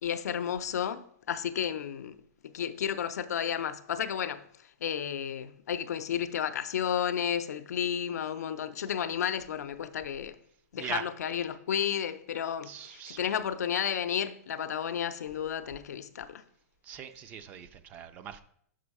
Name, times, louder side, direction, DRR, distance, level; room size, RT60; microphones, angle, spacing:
voice 1, 0.0-2.2 2.4-4.4 4.8-10.4 10.7-16.4, left 9 dB, 80° left, 0.6 m, -32 dB
voice 2, 12.7-13.2 16.8-18.4, right 8 dB, 20° right, 0.4 m, -40 dB
6.1 x 6.1 x 4.7 m
hypercardioid pair, 165°, 9 cm